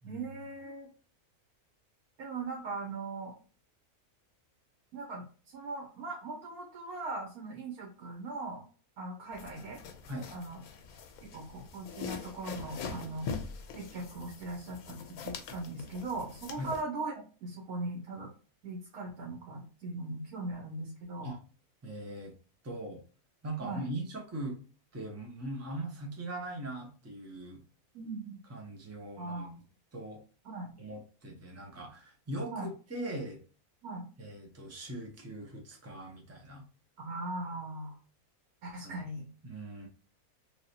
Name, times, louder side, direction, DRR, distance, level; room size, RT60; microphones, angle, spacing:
voice 1, 0.0-0.9 2.2-3.4 4.9-8.6 9.0-9.8 10.3-10.6 11.2-13.3 13.7-18.3 18.6-21.3 23.6-23.9 27.9-28.4 29.2-29.6 30.4-30.8 32.5-32.7 33.8-34.1 37.0-38.0 38.6-39.3, right 2 dB, 85° right, -1 dB, 1.3 m, -39 dB
sound 1, 9.3-16.8, left 5 dB, 80° left, 1.1 m, -43 dB
voice 2, 21.8-22.3 22.6-23.0 23.4-24.6 24.9-27.6 28.5-29.5 29.9-30.2 30.8-33.4 34.2-36.6 38.8-39.0 39.4-39.9, right 1 dB, 20° right, 1 dB, 0.4 m, -40 dB
3.2 x 2.7 x 2.7 m, 0.38 s
omnidirectional pair, 1.5 m